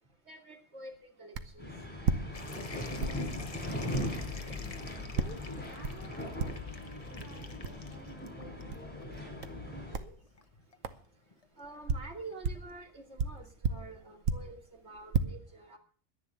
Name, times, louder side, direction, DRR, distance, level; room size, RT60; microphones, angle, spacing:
voice 1, 0.3-1.7 11.6-15.8, right 2 dB, 55° right, 1 dB, 2.9 m, -48 dB
sound 1, 1.3-1.6 2.0-2.7 3.0-3.3 3.9-4.1 5.2-5.4 5.8-6.1 6.4-6.8 7.2-7.3 7.6-7.8 8.7-8.9 9.4-9.6 9.9-10.2 10.8-11.0 11.6-12.7 13.2-14.6 14.9-15.2, right 5 dB, 80° right, 1.3 m, -33 dB
sound 2, 1.6-10.0, left 1 dB, 5° left, 4.5 m, -39 dB
sound 3, 2.3-13.6, left 3 dB, 30° left, 1.0 m, -51 dB
voice 2, 5.2-6.2 6.5-10.3, right 2 dB, 35° right, -3 dB, 3.8 m, -52 dB
11.0 x 10.5 x 6.8 m, 0.41 s
omnidirectional pair, 1.3 m